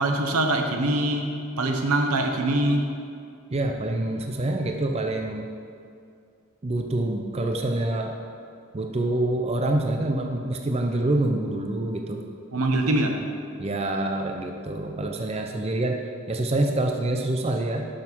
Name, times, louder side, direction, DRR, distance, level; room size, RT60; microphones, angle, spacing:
voice 1, 0.0-2.9 12.5-13.2, right 1 dB, 80° right, 4 dB, 1.0 m, -23 dB
voice 2, 3.5-5.5 6.6-8.2 8.7-12.2 13.6-16.0 16.3-17.9, right 1 dB, 30° right, 3 dB, 0.5 m, -26 dB
11.5 x 6.3 x 4.5 m, 2.3 s
head